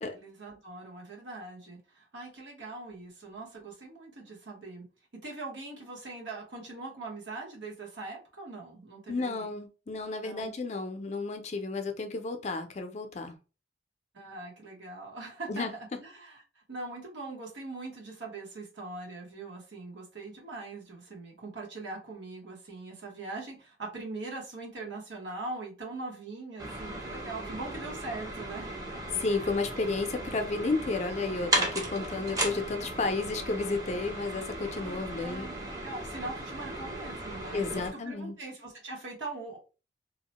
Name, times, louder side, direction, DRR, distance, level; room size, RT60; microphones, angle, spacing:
voice 1, 0.1-4.9 5.2-9.4 10.2-10.5 14.1-28.7 29.4-29.5 30.2-30.3 34.8-39.6, right 3 dB, 90° right, 1.1 m, -42 dB
voice 2, 9.1-13.4 15.5-15.7 29.2-35.5 37.5-38.3, left 3 dB, 40° left, 0.4 m, -32 dB
sound 1, 26.6-37.9, right 1 dB, 20° right, 0.6 m, -36 dB
2.8 x 2.1 x 2.9 m
head